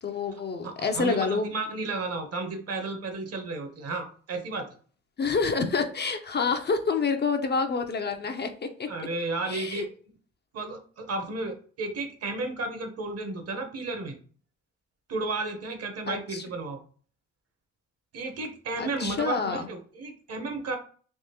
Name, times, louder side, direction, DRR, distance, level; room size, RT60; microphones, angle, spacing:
voice 1, 0.0-1.5 5.2-8.9 9.5-9.9 16.1-16.4 18.8-19.7, left 5 dB, 35° left, 6 dB, 0.5 m, -28 dB
voice 2, 0.6-4.7 8.9-9.9 10.5-14.2 15.1-16.8 18.1-20.8, right 3 dB, 55° right, 6 dB, 0.9 m, -33 dB
3.6 x 2.9 x 2.8 m, 0.43 s
cardioid pair, 90°, 30 cm